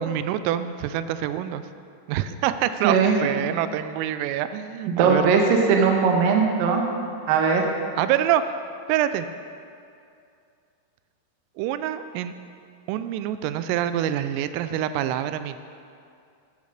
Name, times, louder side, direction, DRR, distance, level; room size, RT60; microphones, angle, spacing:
voice 1, 0.0-1.6 2.1-5.3 8.0-8.5 8.9-9.3 11.6-12.3 12.9-15.6, right 11 dB, 90° right, 12 dB, 3.2 m, -26 dB
voice 2, 2.8-3.2 4.9-6.8 7.3-7.7, right 5 dB, 70° right, 2 dB, 2.1 m, -19 dB
12.5 x 8.6 x 6.5 m, 2.4 s
omnidirectional pair, 5.7 m